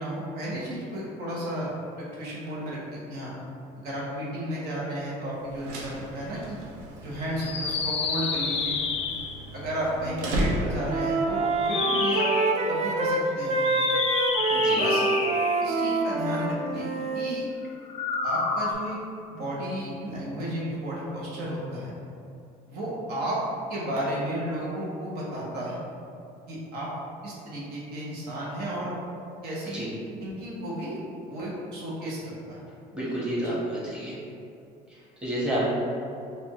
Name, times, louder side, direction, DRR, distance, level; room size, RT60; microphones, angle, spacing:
voice 1, 0.0-3.3 3.8-6.6 7.0-8.8 9.5-12.3 12.7-13.6 14.7-15.0 15.6-16.9 17.1-17.5 18.2-19.0 19.3-21.9 22.7-23.4 23.7-25.8 26.5-26.9 27.2-28.9 29.4-29.9 30.2-31.0 31.3-32.6 33.4-33.5, right 1 dB, 70° right, -6 dB, 1.0 m, -33 dB
sound 1, 5.4-11.2, right 1 dB, 90° right, 0.6 m, -34 dB
sound 2, 7.3-9.5 11.5-12.6 13.6-15.8 17.8-18.7, left 5 dB, 35° left, 0.4 m, -29 dB
Wind instrument woodwind instrument, 10.0-10.4 10.7-17.3, right 3 dB, 40° right, 0.4 m, -26 dB
voice 2, 14.5-14.8 29.7-29.9 32.9-34.2 34.9-35.6, right 1 dB, 5° right, -8 dB, 1.3 m, -30 dB
4.2 x 2.6 x 3.0 m, 2.6 s
cardioid pair, 100°, 17 cm